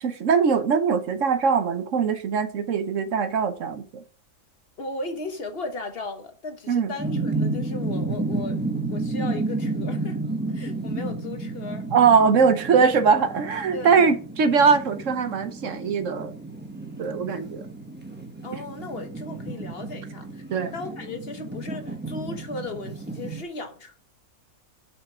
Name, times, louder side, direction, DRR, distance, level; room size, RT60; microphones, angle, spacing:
voice 1, 0.0-4.0 6.7-6.9 11.9-16.3 17.0-17.7 20.5-20.7, right 5 dB, 60° right, 1.2 m, -21 dB
voice 2, 4.8-8.6 8.9-10.2 10.5-11.9 13.7-14.1 18.4-20.4 20.7-24.0, left 2 dB, 40° left, 1.3 m, -36 dB
sound 1, 7.0-23.4, right 2 dB, 10° right, 0.9 m, -32 dB
6.9 x 5.8 x 5.0 m
omnidirectional pair, 1.6 m